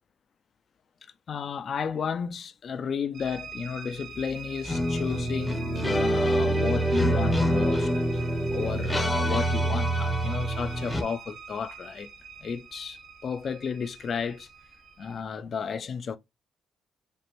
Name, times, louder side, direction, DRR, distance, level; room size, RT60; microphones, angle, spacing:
voice 1, 1.3-7.9 8.5-12.1 12.4-14.5 15.0-16.2, left 6 dB, 50° left, 0.4 m, -33 dB
sound 1, 3.1-15.2, right 6 dB, 65° right, 1.1 m, -44 dB
sound 2, 4.6-11.0, right 1 dB, 20° left, 0.7 m, -26 dB
5.1 x 2.1 x 2.9 m
cardioid pair, 90°, 0 cm